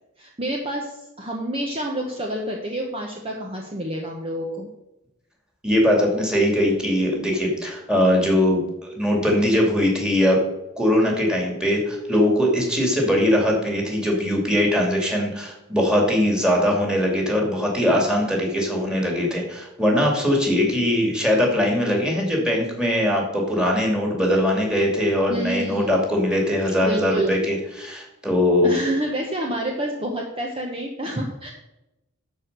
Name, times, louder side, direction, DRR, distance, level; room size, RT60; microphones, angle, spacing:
voice 1, 0.2-4.7 25.3-26.0 26.8-27.4 28.6-31.5, right 1 dB, 25° right, 0 dB, 1.1 m, -28 dB
voice 2, 5.6-10.4 10.8-28.7, left 1 dB, 5° right, 0 dB, 2.5 m, -21 dB
12.0 x 4.8 x 6.7 m, 0.93 s
head